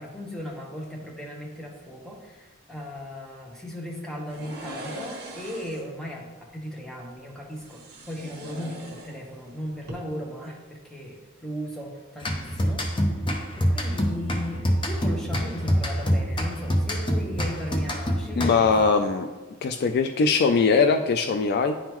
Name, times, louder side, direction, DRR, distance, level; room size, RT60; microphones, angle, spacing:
voice 1, 0.0-13.2 13.6-18.9, equal, 5° left, -2 dB, 0.9 m, -37 dB
sound 1, 4.3-5.9 7.5-9.5 9.8-9.9, right 1 dB, 50° right, 1.2 m, -40 dB
sound 2, 12.2-18.9, equal, 25° left, 0.7 m, -26 dB
voice 2, 18.4-19.3 19.6-21.8, left 5 dB, 50° left, 7 dB, 0.3 m, -21 dB
10.0 x 3.6 x 3.0 m, 1.2 s
head